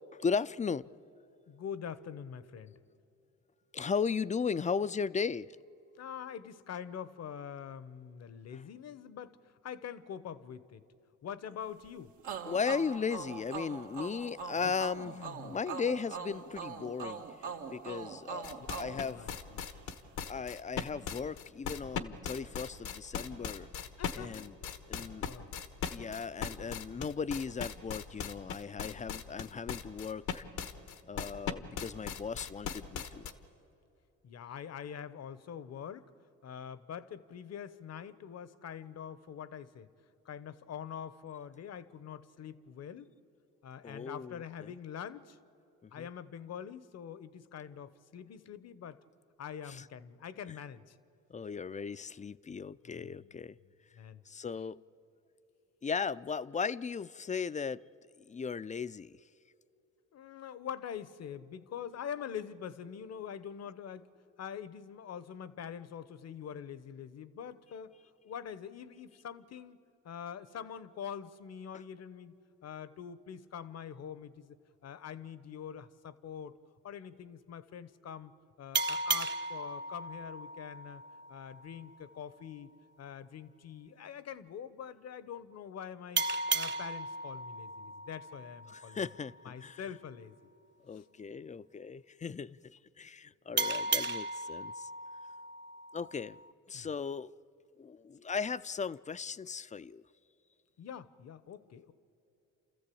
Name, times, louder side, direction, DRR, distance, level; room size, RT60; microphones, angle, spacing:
voice 1, 0.1-0.9 3.7-5.5 12.4-15.1 15.4-17.2 17.7-19.2 20.3-23.7 24.1-24.5 24.9-25.3 25.9-30.4 31.1-33.3 43.8-44.7 45.8-46.1 49.7-49.9 51.3-53.6 54.3-54.8 55.8-57.8 58.3-59.2 88.7-89.8 90.8-94.9 95.9-96.4 96.7-97.3 97.8-100.0, left 5 dB, 25° left, 0.5 m, -36 dB
voice 2, 1.5-2.8 6.0-9.4 9.6-10.9 11.2-12.2 14.6-14.7 15.1-15.6 18.9-19.7 24.0-24.5 25.0-25.5 34.2-36.1 36.4-39.9 40.2-43.1 43.6-45.4 45.9-49.0 49.4-51.0 52.8-53.4 53.9-54.2 60.1-64.1 64.4-68.0 68.2-72.3 72.6-74.6 74.8-76.6 76.8-78.3 78.6-81.0 81.3-82.7 83.0-86.2 86.5-89.0 89.4-90.3 90.9-91.0 96.7-96.9 100.8-101.9, left 8 dB, 60° left, 1.0 m, -44 dB
sound 1, 12.2-19.8, right 5 dB, 85° right, 1.9 m, -42 dB
sound 2, 18.4-33.3, left 8 dB, 80° left, 1.3 m, -38 dB
sound 3, 78.7-82.0 86.2-89.4 93.6-96.5, right 4 dB, 40° right, 0.9 m, -36 dB
29.0 x 14.0 x 8.5 m
cardioid pair, 75°, 30 cm